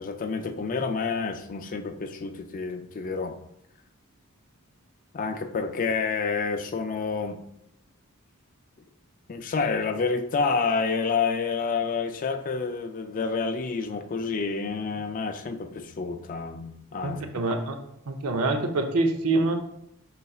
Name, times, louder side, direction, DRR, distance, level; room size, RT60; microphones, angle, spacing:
voice 1, 0.0-3.4 5.1-7.4 9.3-17.2, left 4 dB, 40° left, 7 dB, 0.4 m, -29 dB
voice 2, 17.0-17.8 18.1-19.5, right 2 dB, 80° right, 5 dB, 0.6 m, -25 dB
5.4 x 4.0 x 2.3 m, 0.77 s
head